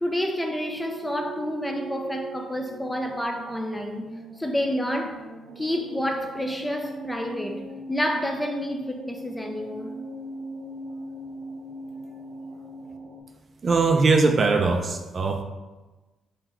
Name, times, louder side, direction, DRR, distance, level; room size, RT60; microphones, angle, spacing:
voice 1, 0.0-4.1 4.4-5.2 5.6-10.0, equal, 10° left, 0.5 m, -29 dB
sound 1, 0.7-13.2, right 2 dB, 85° right, 0.8 m, -40 dB
voice 2, 13.6-15.4, right 4 dB, 40° right, 0.4 m, -21 dB
3.7 x 2.8 x 4.4 m
cardioid pair, 90°, 0 cm